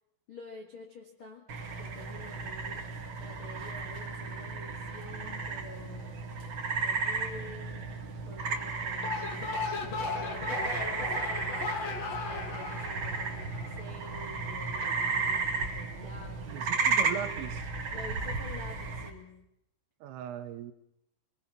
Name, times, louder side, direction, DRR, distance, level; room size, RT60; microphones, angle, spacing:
voice 1, 0.3-1.5 1.7-2.9 3.2-6.2 6.8-8.0 8.3-10.6 10.9-16.7 17.9-19.5, left 2 dB, 65° left, 2 dB, 1.2 m, -48 dB
sound 1, 1.5-19.1, right 4 dB, 55° right, 1.4 m, -34 dB
sound 2, 8.9-14.2, left 4 dB, 50° left, 2.0 m, -36 dB
voice 2, 16.5-17.7 20.0-20.7, right 10 dB, 90° right, 9 dB, 3.8 m, -39 dB
26.5 x 21.5 x 6.0 m, 0.80 s
omnidirectional pair, 5.7 m